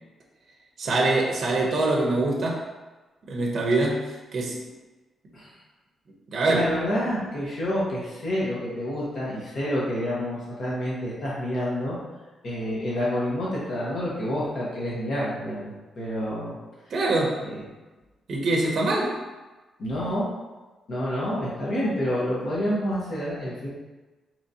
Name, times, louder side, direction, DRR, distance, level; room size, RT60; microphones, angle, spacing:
voice 1, 0.8-2.7 3.3-4.6 6.3-6.7 16.9-17.4 18.3-19.2, right 2 dB, 50° right, -1 dB, 0.6 m, -24 dB
voice 2, 6.5-12.0 12.4-16.5 17.4-17.6 19.8-20.3 20.9-23.7, equal, 50° left, -7 dB, 1.0 m, -28 dB
3.9 x 3.0 x 2.7 m, 1.2 s
wide cardioid pair, 155°, 0 cm